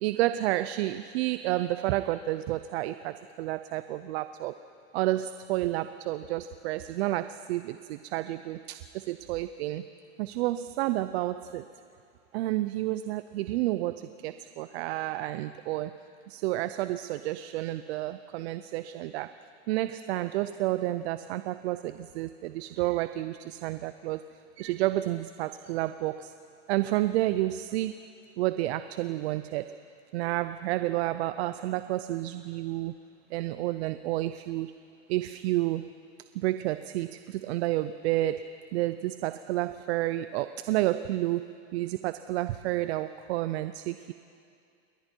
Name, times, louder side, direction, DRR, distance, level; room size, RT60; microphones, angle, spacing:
voice 1, 0.0-4.5 4.9-9.9 10.2-11.6 12.3-16.0 16.3-19.3 19.7-24.2 24.6-26.3 26.7-28.0 28.4-29.8 30.1-33.0 33.3-34.7 35.1-35.9 36.3-44.1, right 15 dB, 70° right, 12 dB, 0.7 m, -30 dB
28.0 x 22.0 x 4.6 m, 2.4 s
supercardioid pair, 130°, 33 cm